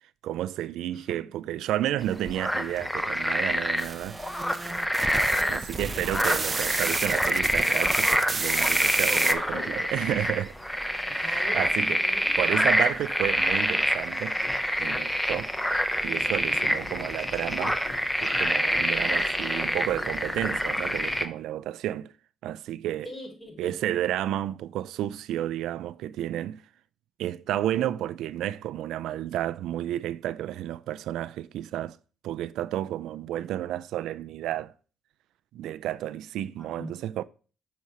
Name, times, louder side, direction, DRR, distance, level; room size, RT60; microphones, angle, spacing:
voice 1, 0.2-4.2 5.5-10.5 11.1-12.0 12.4-14.4 14.8-15.5 16.0-17.8 18.2-22.1 22.4-23.1 23.6-26.6 27.2-32.0 32.2-34.7 35.5-37.2, right 12 dB, 85° right, 0.3 m, -31 dB
voice 2, 0.9-1.3 5.1-6.2 9.1-9.7 11.2-12.3 16.7-16.9 18.9-19.4 23.0-23.7 36.6-36.9, left 2 dB, 35° left, 3.9 m, -42 dB
sound 1, 2.0-21.3, equal, 5° left, 0.8 m, -26 dB
sound 2, 3.8-9.3, right 4 dB, 30° right, 0.6 m, -31 dB
sound 3, 14.4-21.3, left 3 dB, 60° left, 2.4 m, -45 dB
6.6 x 4.2 x 4.8 m
cardioid pair, 75°, 0 cm